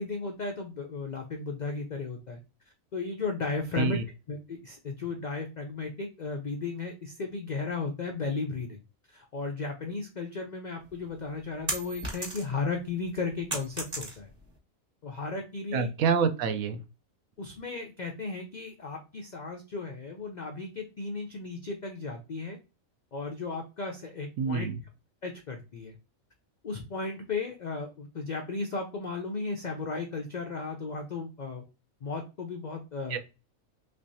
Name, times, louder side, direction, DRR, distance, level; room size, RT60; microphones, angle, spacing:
voice 1, 0.0-2.4 2.9-4.0 4.3-8.8 9.1-14.3 15.0-15.9 17.4-22.6 23.1-24.7 25.2-26.0 26.6-31.6 32.0-33.2, left 4 dB, 70° left, 3 dB, 0.4 m, -35 dB
sound 1, 10.9-12.7 13.0-14.5, right 2 dB, 30° right, 1.2 m, -35 dB
voice 2, 15.7-16.8 24.4-24.7 33.1-33.2, right 6 dB, 80° right, 9 dB, 1.1 m, -27 dB
3.3 x 3.2 x 2.6 m, 0.30 s
omnidirectional pair, 1.5 m